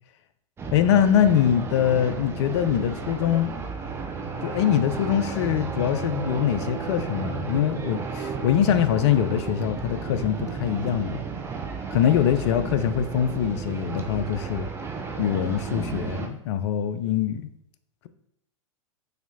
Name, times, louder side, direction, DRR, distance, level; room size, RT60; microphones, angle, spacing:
sound 1, 0.6-16.3, right 5 dB, 15° right, 0.5 m, -33 dB
voice 1, 0.7-3.5 4.4-11.2 11.9-14.7 15.2-17.5, left 10 dB, 55° left, 11 dB, 0.4 m, -23 dB
4.0 x 2.9 x 2.7 m, 0.76 s
figure-of-eight pair, 95°, 17 cm